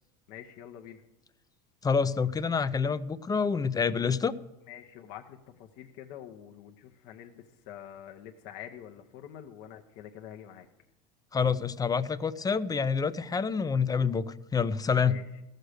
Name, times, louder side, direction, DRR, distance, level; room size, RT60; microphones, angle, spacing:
voice 1, 0.3-1.0 4.7-10.7 15.0-15.2, left 10 dB, 60° left, 3 dB, 1.0 m, -46 dB
voice 2, 1.8-4.3 11.3-15.2, left 5 dB, 20° left, 14 dB, 0.5 m, -27 dB
14.5 x 6.6 x 6.6 m, 0.98 s
hypercardioid pair, 90°, 20 cm